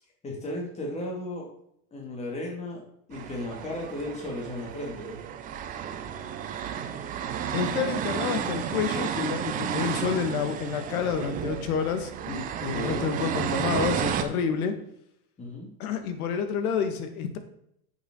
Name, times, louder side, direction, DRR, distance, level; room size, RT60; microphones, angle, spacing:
voice 1, 0.2-1.5 1.9-2.8 3.1-5.2 12.7-13.1 15.4-15.7, left 1 dB, 15° left, -1 dB, 2.3 m, -35 dB
sound 1, 3.1-14.2, right 8 dB, 20° right, 0.5 m, -32 dB
voice 2, 7.5-14.7 15.8-17.4, left 6 dB, 70° left, 8 dB, 1.7 m, -29 dB
9.6 x 7.3 x 3.8 m, 0.73 s
supercardioid pair, 150°, 46 cm